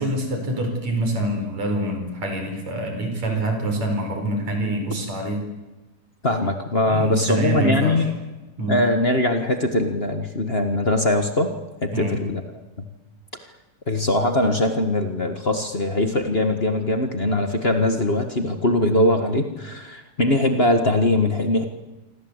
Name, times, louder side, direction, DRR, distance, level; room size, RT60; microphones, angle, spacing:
voice 1, 0.0-5.5 6.9-8.1 8.6-8.8 11.9-12.2, right 1 dB, 50° right, 5 dB, 5.8 m, -25 dB
voice 2, 6.2-8.1 8.7-11.5 11.8-12.8 13.9-21.7, left 1 dB, 40° left, 6 dB, 0.9 m, -21 dB
27.0 x 25.0 x 8.2 m, 1.1 s
omnidirectional pair, 4.0 m